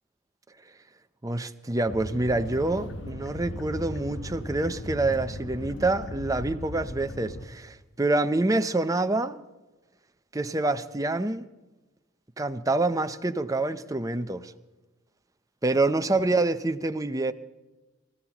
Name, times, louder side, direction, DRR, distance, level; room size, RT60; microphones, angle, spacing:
voice 1, 1.2-9.4 10.3-11.5 12.4-14.5 15.6-17.3, right 2 dB, 15° right, 0.7 m, -26 dB
sound 1, 1.9-7.5, left 1 dB, 60° left, 1.3 m, -37 dB
25.0 x 15.5 x 3.0 m
head